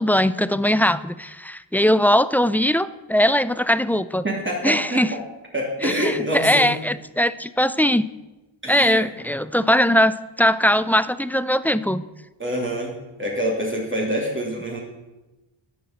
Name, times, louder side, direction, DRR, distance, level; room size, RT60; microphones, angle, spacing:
voice 1, 0.0-4.2 4.6-5.1 5.8-8.0 8.7-12.0, equal, 5° left, 15 dB, 0.4 m, -20 dB
voice 2, 4.2-5.2 5.5-6.7 8.6-9.1 12.4-12.9 13.2-14.8, equal, 25° right, -2 dB, 3.0 m, -26 dB
11.5 x 8.2 x 7.4 m, 1.1 s
wide cardioid pair, 90°, 47 cm